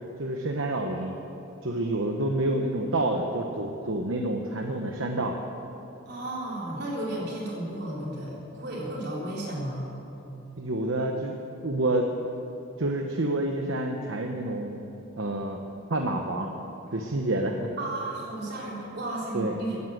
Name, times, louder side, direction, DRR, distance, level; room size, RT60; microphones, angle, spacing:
voice 1, 0.2-1.1 1.6-5.4 10.6-11.3 11.6-12.1 12.8-14.8 15.2-15.6 15.9-16.5 16.9-17.7 19.3-19.6, right 1 dB, 70° right, 3 dB, 1.0 m, -28 dB
voice 2, 6.1-9.9 17.8-19.8, right 1 dB, 55° right, -4 dB, 4.0 m, -33 dB
15.5 x 11.0 x 7.8 m, 3.0 s
head